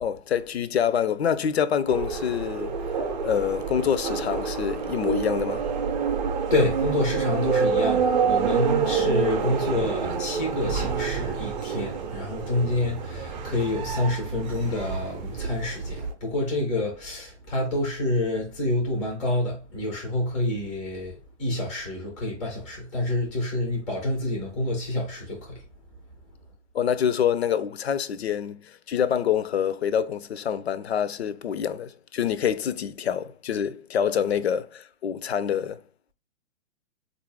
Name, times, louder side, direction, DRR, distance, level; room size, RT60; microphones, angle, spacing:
voice 1, 0.0-2.8 3.2-5.7 26.7-35.8, left 8 dB, 60° left, 0.5 m, -26 dB
sound 1, 1.9-16.1, right 6 dB, 35° right, 0.6 m, -28 dB
voice 2, 6.5-25.6, left 1 dB, 5° left, 0.4 m, -28 dB
4.0 x 2.6 x 3.3 m
figure-of-eight pair, 120°, 37 cm